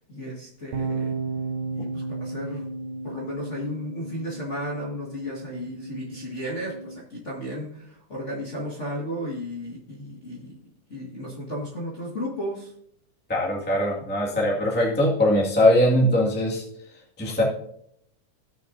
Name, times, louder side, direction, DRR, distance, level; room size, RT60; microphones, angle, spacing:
voice 1, 0.1-1.1 1.7-2.7 3.0-10.6 10.9-12.7, equal, 30° left, -3 dB, 1.3 m, -34 dB
sound 1, 0.7-7.0, right 3 dB, 75° right, 2.0 m, -34 dB
voice 2, 13.3-16.6 17.2-17.4, left 1 dB, 5° left, -4 dB, 0.8 m, -21 dB
18.0 x 6.4 x 2.7 m, 0.69 s
omnidirectional pair, 3.8 m